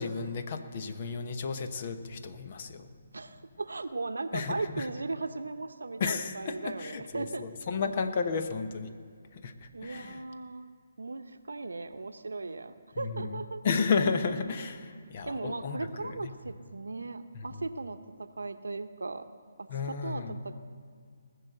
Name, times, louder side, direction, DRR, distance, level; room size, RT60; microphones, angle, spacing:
voice 1, 0.0-2.9 4.3-4.9 6.0-8.9 9.3-10.2 12.9-16.3 19.7-20.4, left 5 dB, 45° left, 9 dB, 1.1 m, -33 dB
voice 2, 3.1-7.4 9.7-10.7 11.0-13.6 15.3-19.2 19.6-20.6, right 3 dB, 80° right, 10 dB, 0.9 m, -37 dB
19.5 x 6.8 x 7.9 m, 2.1 s
figure-of-eight pair, 150°, 0 cm